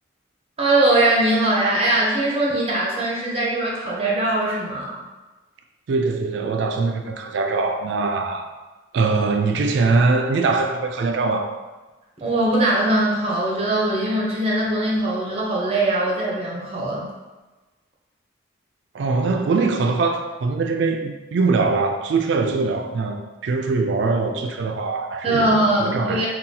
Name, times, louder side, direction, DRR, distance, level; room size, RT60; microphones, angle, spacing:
voice 1, 0.6-5.0 12.2-17.1 25.2-26.3, right 1 dB, 30° right, -4 dB, 0.7 m, -21 dB
voice 2, 5.9-8.5 8.9-11.5 18.9-23.2 23.4-25.5 25.8-26.3, right 3 dB, 65° right, 4 dB, 0.3 m, -22 dB
4.0 x 2.3 x 2.7 m, 1.2 s
head